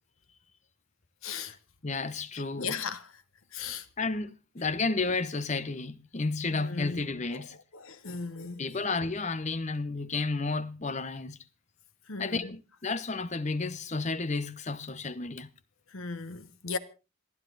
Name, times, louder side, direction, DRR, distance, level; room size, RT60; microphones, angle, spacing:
voice 1, 1.2-1.6 2.3-3.2 3.5-3.9 6.5-7.0 7.3-8.6 12.1-12.5 15.9-16.8, left 5 dB, 80° left, 1.2 m, -37 dB
voice 2, 1.8-2.8 4.0-7.6 8.6-11.4 12.2-15.5, left 3 dB, 35° left, 0.7 m, -32 dB
27.5 x 9.7 x 3.9 m
head